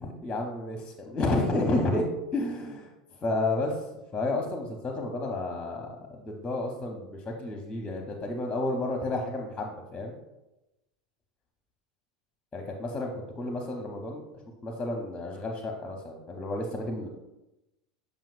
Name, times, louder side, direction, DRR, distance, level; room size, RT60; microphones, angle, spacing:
voice 1, 0.0-2.9 3.2-3.8 4.1-7.1 7.4-10.2 12.5-14.2 14.6-17.1, left 2 dB, 20° left, 2 dB, 0.8 m, -31 dB
7.5 x 5.1 x 2.5 m, 0.97 s
figure-of-eight pair, 85°, 4 cm